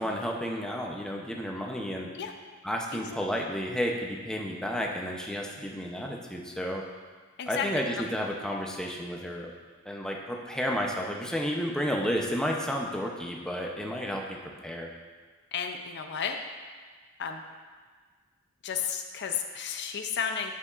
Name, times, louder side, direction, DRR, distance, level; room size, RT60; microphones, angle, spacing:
voice 1, 0.0-2.1 2.6-6.8 7.5-9.5 9.9-14.9, equal, 5° left, 0 dB, 0.6 m, -32 dB
voice 2, 2.9-3.2 7.4-7.7 15.5-16.4 17.2-17.4 18.6-20.5, left 7 dB, 50° left, 5 dB, 0.4 m, -33 dB
9.8 x 6.9 x 2.4 m, 1.5 s
head